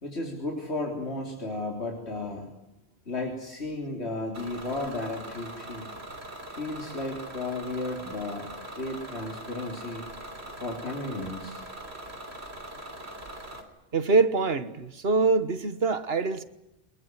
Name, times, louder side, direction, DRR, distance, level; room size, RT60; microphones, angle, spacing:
voice 1, 0.0-2.5 3.1-5.9 6.5-10.0 10.6-11.6, left 2 dB, 90° left, 4.0 m, -34 dB
Bus / Engine, 4.3-13.6, right 1 dB, 85° right, 3.6 m, -42 dB
voice 2, 13.9-16.4, right 4 dB, 65° right, 1.7 m, -24 dB
24.5 x 21.0 x 9.7 m
omnidirectional pair, 1.1 m